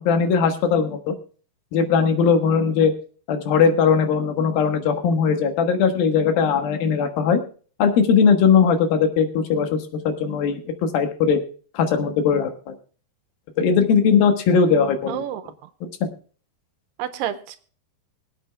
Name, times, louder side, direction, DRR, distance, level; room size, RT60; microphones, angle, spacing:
voice 1, 0.1-1.1 1.7-2.9 3.3-7.4 7.8-11.4 11.7-12.7 13.6-15.2 16.0-16.1, left 6 dB, 85° left, 6 dB, 3.2 m, -19 dB
voice 2, 15.1-15.7 17.0-17.6, right 11 dB, 80° right, 11 dB, 2.4 m, -30 dB
24.0 x 8.6 x 2.3 m, 0.41 s
omnidirectional pair, 4.1 m